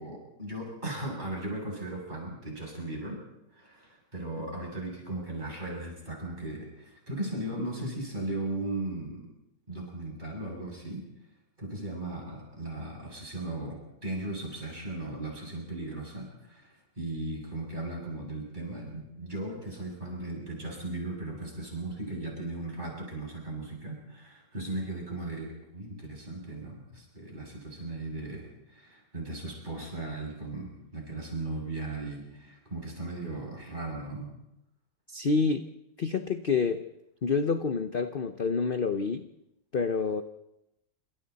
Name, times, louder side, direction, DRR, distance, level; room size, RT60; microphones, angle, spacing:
voice 1, 0.0-3.2 3.5-9.3 9.7-11.1 11.6-34.3, right 2 dB, 25° right, -1 dB, 8.1 m, -37 dB
voice 2, 35.1-35.6 36.0-36.8 37.2-39.3 39.7-40.2, left 4 dB, 45° left, 8 dB, 0.8 m, -28 dB
28.0 x 26.5 x 4.2 m, 0.87 s
omnidirectional pair, 1.9 m